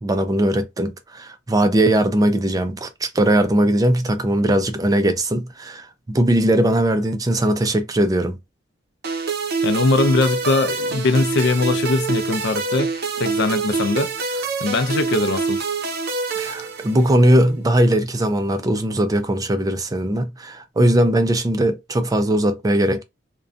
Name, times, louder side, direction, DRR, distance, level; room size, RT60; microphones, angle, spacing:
voice 1, 0.0-8.4 16.4-23.0, right 1 dB, 20° right, 0.3 m, -19 dB
sound 1, 9.0-17.3, right 4 dB, 60° right, 0.6 m, -25 dB
voice 2, 9.6-12.9 13.2-15.7, left 3 dB, 65° left, 0.4 m, -21 dB
2.5 x 2.2 x 2.4 m
head